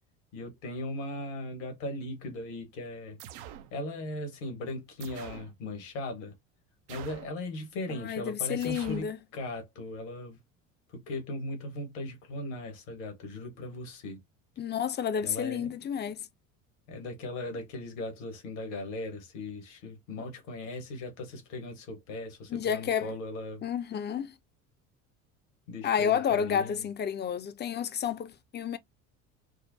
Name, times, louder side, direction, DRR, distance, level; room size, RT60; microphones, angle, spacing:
voice 1, 0.3-3.2 3.7-6.3 6.9-10.4 10.9-14.2 15.2-15.7 16.9-23.6 25.7-26.9, left 2 dB, 70° left, 1.7 m, -38 dB
sound 1, 3.2-3.7 5.0-5.5 6.9-7.4 8.6-9.1, right 11 dB, 65° right, 0.7 m, -45 dB
voice 2, 7.9-9.2 14.6-16.3 22.5-23.1 23.6-24.3 25.8-28.8, left 8 dB, 25° left, 0.6 m, -30 dB
4.7 x 2.1 x 2.7 m
hypercardioid pair, 70°, 40 cm